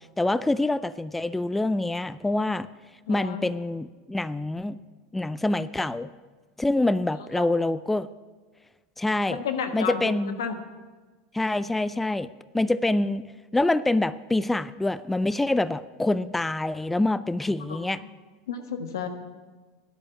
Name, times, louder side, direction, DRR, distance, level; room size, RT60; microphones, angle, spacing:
voice 1, 0.2-2.7 3.1-4.8 5.1-6.1 6.6-8.1 9.0-9.4 9.7-10.4 11.3-12.3 12.5-13.2 13.5-18.0, left 2 dB, 10° left, 16 dB, 0.4 m, -26 dB
voice 2, 3.1-3.4 7.3-7.4 9.3-10.6 17.7-18.1 18.5-19.1, left 6 dB, 85° left, 7 dB, 1.4 m, -32 dB
13.5 x 11.0 x 6.4 m, 1.3 s
hypercardioid pair, 100°, 2 cm